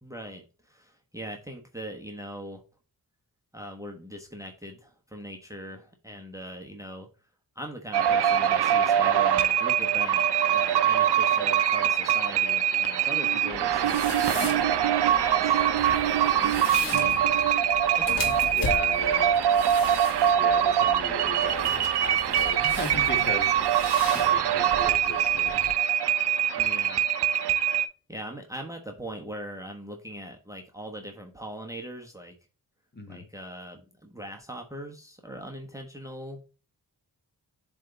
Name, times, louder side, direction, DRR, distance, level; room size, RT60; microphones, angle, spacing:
voice 1, 0.0-2.6 3.5-7.1 7.5-14.5 14.8-15.6 16.4-17.2 18.0-18.6 26.6-27.0 28.1-32.3 33.1-36.4, equal, 10° right, 3 dB, 1.2 m, -41 dB
sound 1, 7.9-27.8, right 9 dB, 80° right, 0.7 m, -23 dB
sound 2, 13.5-25.7, left 4 dB, 55° left, 1.8 m, -38 dB
voice 2, 16.5-16.9 18.5-19.4 20.4-25.7 32.9-33.3, left 2 dB, 25° left, 5 dB, 1.7 m, -37 dB
7.4 x 3.5 x 3.8 m, 0.36 s
cardioid pair, 85°, 39 cm